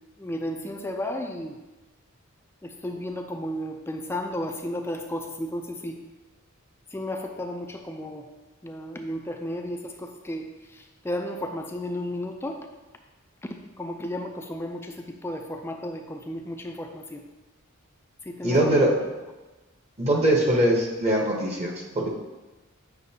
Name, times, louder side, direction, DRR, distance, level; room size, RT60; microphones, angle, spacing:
voice 1, 0.2-1.6 2.6-6.0 6.9-8.3 8.6-12.6 13.4-17.2 18.2-18.9 20.1-20.3, left 1 dB, 10° left, 4 dB, 0.4 m, -33 dB
voice 2, 18.4-18.9 20.0-22.1, right 1 dB, 30° right, 0 dB, 0.9 m, -22 dB
8.2 x 6.0 x 2.8 m, 1.1 s
head